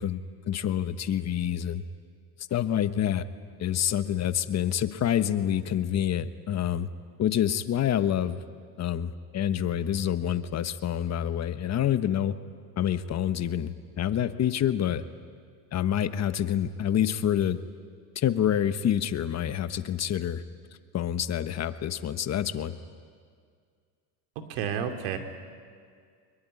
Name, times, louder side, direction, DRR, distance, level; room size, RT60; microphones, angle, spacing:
voice 1, 0.0-1.8 2.5-3.2 3.6-6.9 7.2-8.4 8.8-12.3 12.8-15.0 15.7-17.6 18.1-20.4 20.9-22.8, left 10 dB, 35° left, 11 dB, 1.3 m, -27 dB
voice 2, 24.3-25.2, right 8 dB, 80° right, 5 dB, 3.0 m, -31 dB
23.5 x 22.0 x 9.8 m, 2.1 s
supercardioid pair, 120°, 46 cm